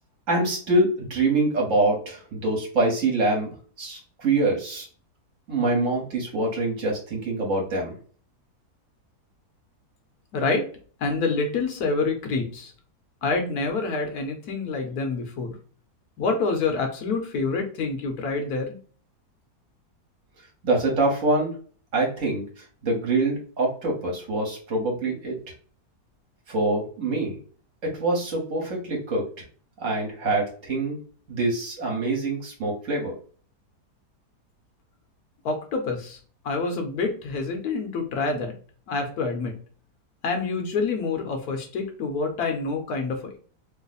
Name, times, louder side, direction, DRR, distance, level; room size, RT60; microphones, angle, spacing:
voice 1, 0.3-4.9 5.5-8.0 20.6-21.6 21.9-22.4 22.8-25.4 26.5-27.4 27.8-29.3 29.8-31.0 31.3-33.1, right 2 dB, 55° right, -1 dB, 1.3 m, -25 dB
voice 2, 10.3-10.7 11.0-12.7 13.2-15.5 16.2-18.8 35.4-36.2 36.4-38.5 38.9-39.5 40.2-43.4, left 4 dB, 70° left, 4 dB, 1.2 m, -27 dB
3.1 x 2.0 x 3.9 m, 0.43 s
omnidirectional pair, 1.7 m